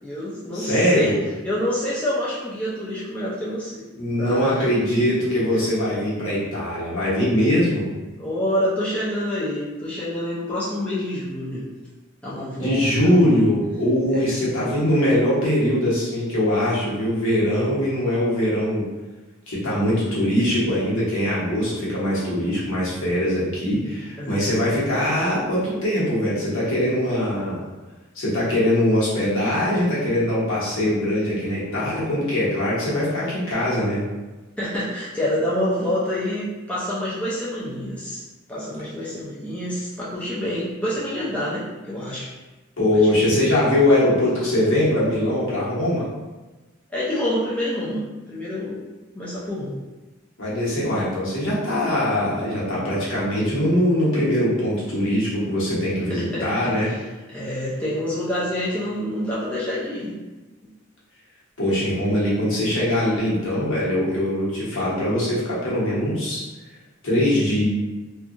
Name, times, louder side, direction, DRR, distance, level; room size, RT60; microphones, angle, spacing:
voice 1, 0.0-1.1 1.4-3.9 4.2-4.7 8.2-11.6 12.2-13.1 24.2-24.6 34.6-38.2 38.5-42.3 42.9-43.2 46.9-48.9 49.1-49.8 56.1-57.0 57.3-60.2, left 1 dB, 5° left, -9 dB, 0.5 m, -27 dB
voice 2, 0.5-1.2 3.9-7.9 12.6-18.8 19.5-27.6 28.1-34.0 39.1-39.2 42.8-46.1 50.4-56.9 61.6-66.4 67.0-67.7, left 1 dB, 65° left, -8 dB, 1.0 m, -22 dB
2.7 x 2.4 x 2.5 m, 1.2 s
head